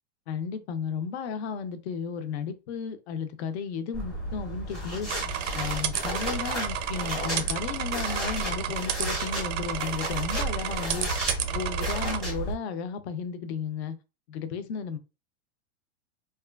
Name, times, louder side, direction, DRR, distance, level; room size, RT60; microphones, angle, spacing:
voice 1, 0.3-5.1 5.5-11.1 11.5-14.0 14.3-15.0, left 6 dB, 60° left, 0.5 m, -34 dB
sound 1, 3.9-12.5, right 1 dB, ahead, 0.5 m, -33 dB
sound 2, 5.1-12.2, right 10 dB, 85° right, 0.5 m, -32 dB
2.9 x 2.2 x 2.2 m
supercardioid pair, 165°, 36 cm